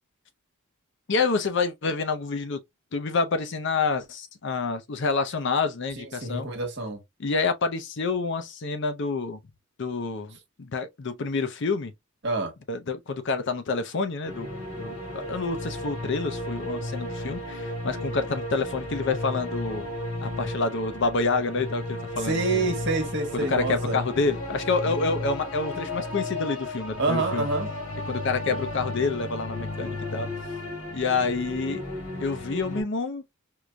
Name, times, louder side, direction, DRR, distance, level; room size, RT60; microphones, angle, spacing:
voice 1, 1.1-2.6 2.9-6.5 7.2-9.4 9.8-11.9 12.7-14.5 14.8-19.9 20.2-22.7 23.3-27.4 28.1-30.3 30.9-31.8 32.2-33.2, left 4 dB, 55° left, 0.5 m, -28 dB
voice 2, 6.0-7.0 12.2-12.5 22.2-24.0 24.8-24.9 27.0-27.7, right 3 dB, 55° right, 1.3 m, -27 dB
sound 1, 14.2-32.8, left 1 dB, 90° left, 2.0 m, -34 dB
4.6 x 2.6 x 2.2 m
head